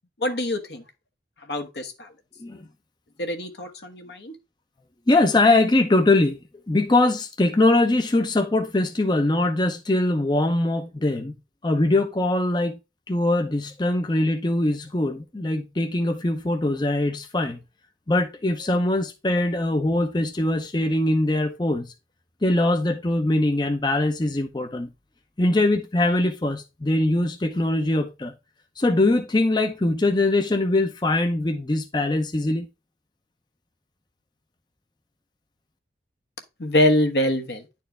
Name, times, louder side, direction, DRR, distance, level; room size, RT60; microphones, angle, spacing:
voice 1, 0.2-0.8 1.5-2.1 3.2-4.4 36.6-37.7, left 1 dB, 70° left, 1.2 m, -24 dB
voice 2, 5.1-6.4 6.7-11.3 11.6-12.8 13.1-17.6 18.1-21.9 22.4-24.9 25.4-28.3 28.8-32.7, left 2 dB, 25° left, 0.6 m, -22 dB
10.0 x 4.4 x 3.3 m
head